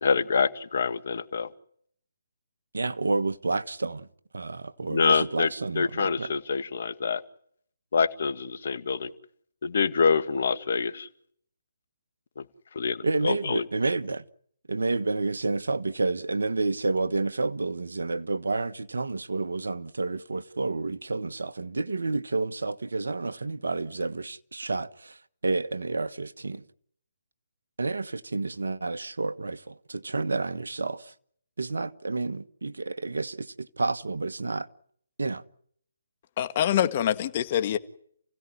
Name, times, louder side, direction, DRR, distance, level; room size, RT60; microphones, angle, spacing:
voice 1, 0.0-1.5 4.9-5.5 5.8-7.2 7.9-9.1 9.6-11.1 12.4-12.5 12.8-13.6, left 5 dB, 60° left, 1.8 m, -26 dB
voice 2, 2.7-4.1 4.3-6.3 13.0-14.2 14.7-26.6 27.8-31.1 31.6-34.7 35.2-35.4, right 3 dB, 80° right, 1.3 m, -30 dB
voice 3, 36.4-37.8, left 10 dB, 35° left, 1.8 m, -25 dB
29.5 x 16.5 x 9.8 m
figure-of-eight pair, 150°, 0 cm